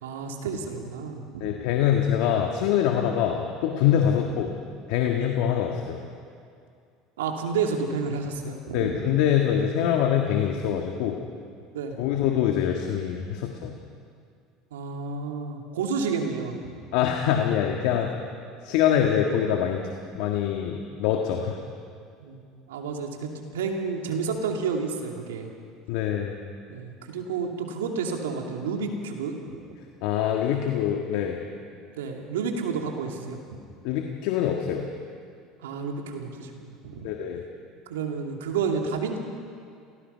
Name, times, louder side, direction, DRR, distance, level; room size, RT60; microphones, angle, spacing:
voice 1, 0.0-1.5 7.2-8.9 11.7-12.0 14.7-16.7 22.2-22.4 22.7-25.5 26.7-29.4 32.0-33.6 35.6-37.1 37.9-39.2, right 5 dB, 90° right, 2 dB, 2.6 m, -30 dB
voice 2, 1.4-4.5 4.9-6.0 8.7-11.2 12.0-13.8 16.9-18.1 18.6-19.9 20.1-21.6 25.9-26.4 30.0-31.4 33.8-34.9 37.0-37.4, left 9 dB, 70° left, 2 dB, 1.6 m, -24 dB
28.0 x 17.0 x 5.7 m, 2.3 s
hypercardioid pair, 85°, 0 cm